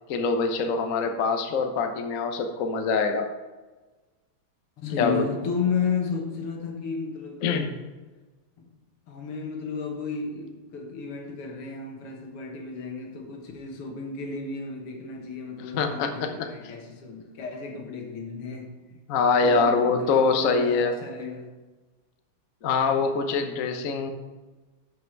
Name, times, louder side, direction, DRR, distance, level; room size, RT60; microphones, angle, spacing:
voice 1, 0.1-3.3 5.0-5.3 7.4-7.7 15.7-16.3 19.1-20.9 22.6-24.1, left 4 dB, 55° left, 1.0 m, -24 dB
voice 2, 4.8-7.8 8.6-8.8 9.1-19.0 19.4-21.5, left 5 dB, 90° left, 2.4 m, -33 dB
11.5 x 5.6 x 4.6 m
omnidirectional pair, 2.4 m